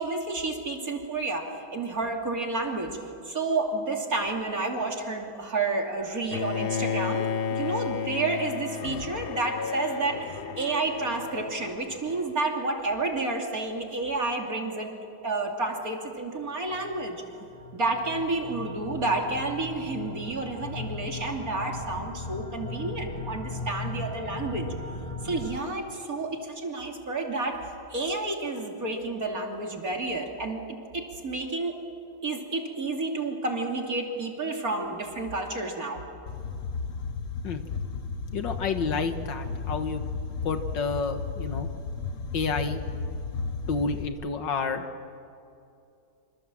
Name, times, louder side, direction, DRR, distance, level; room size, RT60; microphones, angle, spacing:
voice 1, 0.0-3.0 3.2-14.9 15.2-17.2 17.7-24.7 25.2-30.6 30.9-31.8 32.2-36.0, right 3 dB, 45° right, 1 dB, 3.2 m, -30 dB
Bowed string instrument, 6.3-12.4, left 6 dB, 90° left, 0.5 m, -33 dB
sound 1, 16.8-25.6, left 2 dB, 20° left, 1.1 m, -38 dB
sound 2, 36.3-44.1, left 4 dB, 45° left, 1.5 m, -34 dB
voice 2, 38.3-40.0 40.4-41.7 42.3-42.8 43.7-44.9, left 4 dB, 70° left, 7 dB, 2.0 m, -30 dB
26.5 x 26.0 x 7.6 m, 2.6 s
omnidirectional pair, 2.1 m